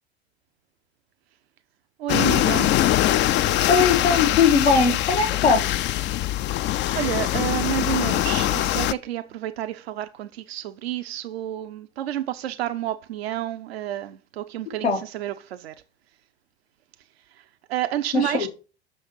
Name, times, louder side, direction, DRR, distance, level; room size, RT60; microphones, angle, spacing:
voice 1, 2.0-2.7 6.4-6.7 6.9-15.7 17.3-18.5, right 12 dB, 70° right, 0.7 m, -30 dB
sound 1, 2.1-8.9, left 13 dB, 35° left, 0.5 m, -22 dB
voice 2, 3.7-5.8 14.8-15.0 18.1-18.5, left 5 dB, 85° left, 2.0 m, -20 dB
6.3 x 6.1 x 7.0 m
figure-of-eight pair, 75°, 31 cm